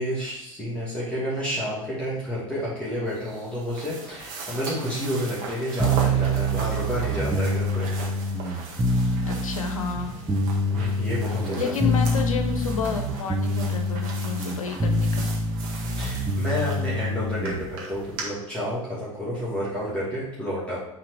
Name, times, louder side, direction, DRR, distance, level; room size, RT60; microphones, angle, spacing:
voice 1, 0.0-7.9 10.7-11.7 16.0-20.8, equal, 5° left, -9 dB, 2.4 m, -30 dB
sound 1, 3.1-18.2, right 3 dB, 55° right, 1.7 m, -39 dB
sound 2, 5.8-17.7, equal, 15° right, 0.7 m, -26 dB
voice 2, 9.2-10.2 11.6-15.3, left 5 dB, 80° left, 5 dB, 0.7 m, -30 dB
5.8 x 3.8 x 4.8 m, 0.88 s
figure-of-eight pair, 75°, 17 cm